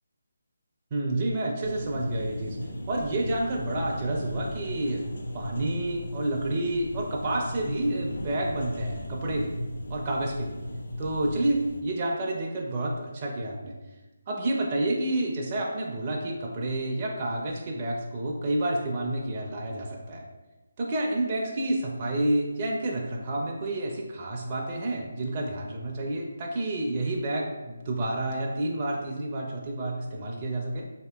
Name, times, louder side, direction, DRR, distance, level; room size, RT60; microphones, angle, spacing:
voice 1, 0.9-2.6 2.9-5.0 5.3-9.5 9.9-10.6 11.0-13.7 14.3-20.2 20.8-30.9, right 1 dB, 30° right, -2 dB, 0.4 m, -29 dB
sound 1, 1.6-11.8, left 1 dB, 70° left, 0.5 m, -36 dB
4.7 x 2.8 x 2.2 m, 1.1 s
figure-of-eight pair, 155°, 0 cm